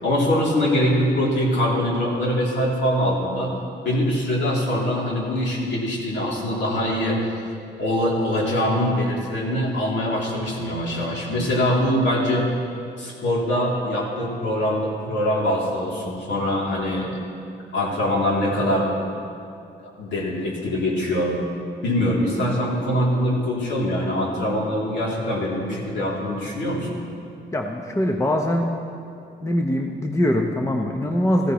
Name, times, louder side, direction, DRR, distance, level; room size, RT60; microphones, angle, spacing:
voice 1, 0.0-3.5 3.8-7.2 7.8-12.5 13.0-17.1 17.7-18.9 19.8-21.4 21.8-27.0, left 1 dB, 65° left, -4 dB, 3.0 m, -23 dB
voice 2, 27.5-28.7 29.4-31.5, left 1 dB, 15° left, 2 dB, 0.8 m, -22 dB
15.0 x 15.0 x 3.1 m, 2.5 s
cardioid pair, 90°, 20 cm